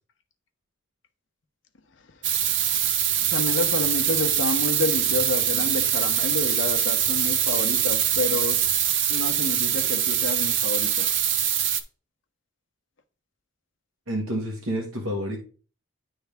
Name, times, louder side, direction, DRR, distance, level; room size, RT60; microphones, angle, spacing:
sound 1, 2.2-11.8, right 9 dB, 60° right, 0.6 m, -23 dB
voice 1, 3.3-8.6 9.1-11.1, left 3 dB, 65° left, 0.9 m, -29 dB
voice 2, 14.1-15.4, equal, 85° right, 1.3 m, -29 dB
10.5 x 3.5 x 3.5 m
head